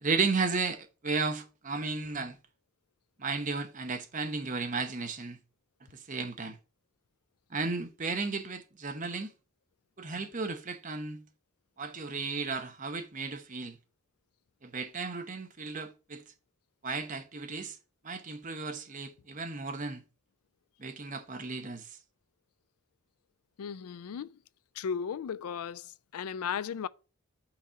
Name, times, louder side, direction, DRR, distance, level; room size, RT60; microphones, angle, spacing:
voice 1, 0.0-2.4 3.2-5.4 5.8-6.6 7.5-9.3 10.0-11.3 11.8-13.8 14.6-16.2 16.8-17.8 18.0-20.0 20.8-22.0, right 4 dB, 35° right, 0.9 m, -34 dB
voice 2, 23.6-24.4 24.8-26.9, left 7 dB, 85° left, 0.4 m, -36 dB
5.9 x 4.3 x 6.3 m
head